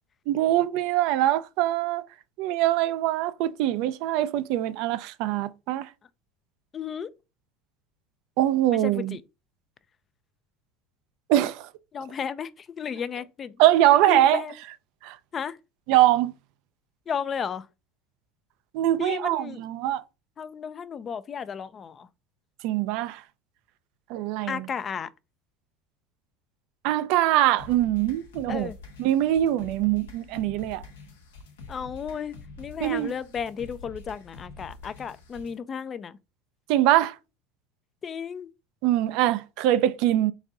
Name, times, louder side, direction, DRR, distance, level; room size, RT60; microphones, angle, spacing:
voice 1, 0.3-2.0 2.4-5.9 8.4-9.2 11.3-11.7 13.6-14.4 15.0-15.2 15.9-16.3 18.7-20.0 22.6-23.2 24.1-24.7 26.8-28.7 29.0-30.8 32.8-33.1 36.7-37.2 38.8-40.3, right 13 dB, 65° right, 0.4 m, -23 dB
voice 2, 6.7-7.1 8.7-9.2 11.9-13.6 14.1-14.5 15.3-15.6 17.1-17.7 19.0-19.6 20.4-22.1 24.5-25.1 28.5-28.8 31.7-36.1 38.0-38.5, left 7 dB, 35° left, 0.4 m, -33 dB
sound 1, 27.6-35.6, left 3 dB, 85° left, 1.0 m, -46 dB
4.0 x 2.6 x 4.6 m
hypercardioid pair, 90°, 0 cm